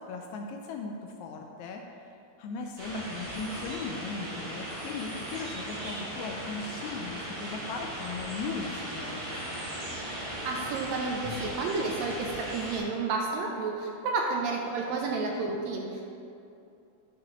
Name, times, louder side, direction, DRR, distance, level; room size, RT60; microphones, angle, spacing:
voice 1, 0.1-1.8 2.4-9.7 11.2-11.3, left 4 dB, 80° left, 2 dB, 1.8 m, -38 dB
sound 1, 2.8-12.8, right 1 dB, 35° right, 1.8 m, -38 dB
voice 2, 10.2-16.0, right 3 dB, 80° right, 1 dB, 1.7 m, -31 dB
10.5 x 5.3 x 3.0 m, 2.6 s
omnidirectional pair, 3.6 m